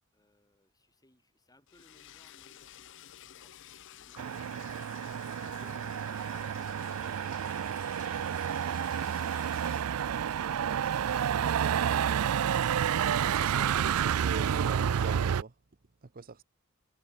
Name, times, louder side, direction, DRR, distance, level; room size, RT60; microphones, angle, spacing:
voice 1, 0.1-2.9 3.2-3.5, left 1 dB, 15° left, 4.1 m, -68 dB
Liquid, 1.7-9.8, left 10 dB, 55° left, 0.7 m, -52 dB
Motor vehicle (road), 4.2-15.4, right 8 dB, 75° right, 0.4 m, -30 dB
voice 2, 5.4-5.8 10.8-10.9 13.3-15.5 16.1-16.4, right 4 dB, 40° right, 0.7 m, -43 dB
head